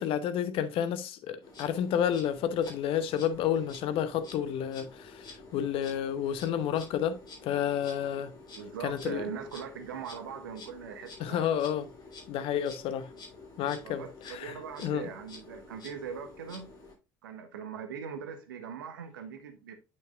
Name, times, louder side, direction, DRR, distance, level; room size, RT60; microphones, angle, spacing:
voice 1, 0.0-8.3 8.8-9.2 11.2-11.9 12.3-13.1 13.6-15.1, left 9 dB, 55° left, 0.9 m, -30 dB
Insect, 1.4-16.9, left 3 dB, 40° left, 3.8 m, -50 dB
voice 2, 8.5-11.5 13.8-16.7 17.2-19.7, right 6 dB, 80° right, 1.1 m, -41 dB
8.7 x 6.3 x 2.5 m
figure-of-eight pair, 60°, 11 cm